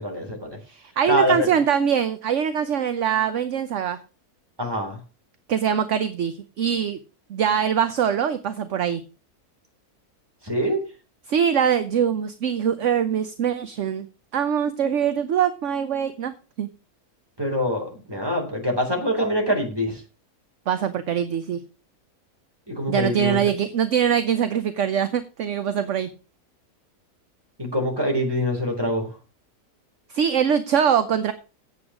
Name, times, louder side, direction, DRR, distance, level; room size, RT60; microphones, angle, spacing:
voice 1, 0.0-0.6 1.1-1.5 4.6-5.0 10.4-10.8 17.4-20.0 22.7-23.4 27.6-29.1, equal, 15° right, 1 dB, 3.6 m, -24 dB
voice 2, 0.7-4.0 5.5-7.0 7.3-9.0 11.3-14.1 14.3-16.7 20.7-21.6 22.9-26.1 30.1-31.3, right 8 dB, 55° right, 10 dB, 1.0 m, -23 dB
8.8 x 8.2 x 6.1 m, 0.33 s
omnidirectional pair, 1.7 m